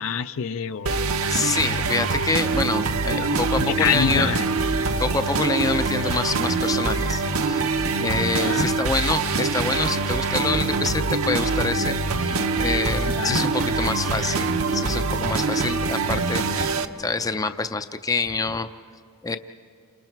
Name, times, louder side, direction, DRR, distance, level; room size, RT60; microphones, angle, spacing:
voice 1, 0.0-1.1 3.2-3.3 3.6-4.4 8.3-8.7 13.1-13.5, left 6 dB, 65° left, 11 dB, 0.5 m, -26 dB
sound 1, 0.9-16.9, right 3 dB, 70° right, 0.8 m, -24 dB
voice 2, 1.3-4.3 5.0-7.7 8.0-18.7 19.2-19.4, left 3 dB, 15° left, 10 dB, 0.5 m, -27 dB
29.5 x 27.5 x 4.6 m, 2.4 s
head